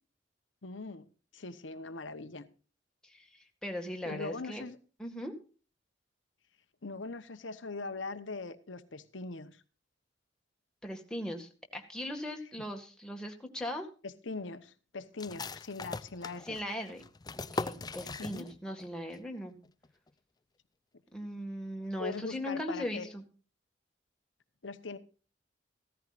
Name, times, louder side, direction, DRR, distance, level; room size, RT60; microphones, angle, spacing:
voice 1, 0.6-1.1 1.3-2.5 4.0-4.8 6.8-9.6 14.0-16.6 18.2-18.5 22.0-23.1 24.6-25.0, left 3 dB, 90° left, 1.0 m, -41 dB
voice 2, 3.6-4.7 5.0-5.3 10.8-13.9 16.4-17.0 17.4-19.5 21.1-23.2, left 1 dB, 5° left, 1.9 m, -39 dB
sound 1, 15.2-18.8 19.1-19.2 19.6-20.1, left 3 dB, 20° left, 0.5 m, -40 dB
15.5 x 14.0 x 2.5 m
head